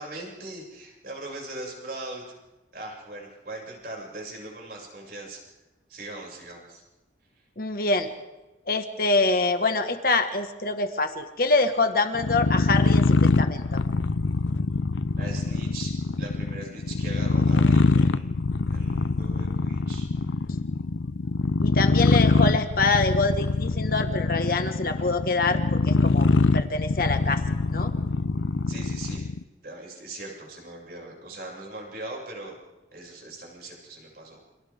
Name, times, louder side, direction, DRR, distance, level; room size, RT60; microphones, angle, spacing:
voice 1, 0.0-2.3 2.7-5.4 5.9-6.8 15.1-15.9 16.2-18.3 18.7-20.1 24.4-24.6 28.7-29.3 29.6-32.6 32.9-34.4, right 2 dB, 55° right, -1 dB, 7.4 m, -40 dB
voice 2, 7.6-8.1 8.7-13.8 21.6-26.3 26.5-27.4 27.7-27.9, left 3 dB, 50° left, 6 dB, 1.8 m, -25 dB
sound 1, 12.1-29.4, left 3 dB, 85° left, 0.6 m, -23 dB
29.0 x 26.5 x 3.8 m, 1.1 s
head